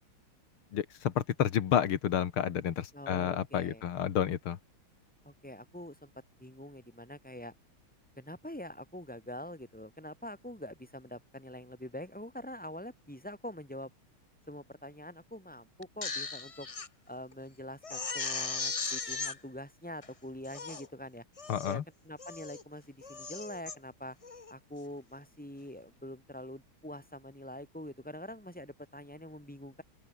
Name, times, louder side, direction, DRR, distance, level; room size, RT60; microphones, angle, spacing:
voice 1, 0.7-4.6 21.5-21.8, left 9 dB, 90° left, 2.3 m, -30 dB
voice 2, 2.9-3.8 5.3-6.1 6.4-7.5 8.2-13.9 14.5-16.7 17.1-21.2 21.6-24.2 24.5-29.8, left 1 dB, 5° left, 5.1 m, -45 dB
Crying sobbing, 15.8-16.9 17.3-17.4 17.8-19.4 20.0-20.1 20.4-20.9 21.4-21.8 22.2-22.6 23.0-23.8 24.2-24.5, left 4 dB, 35° left, 0.5 m, -37 dB
open air
omnidirectional pair, 2.3 m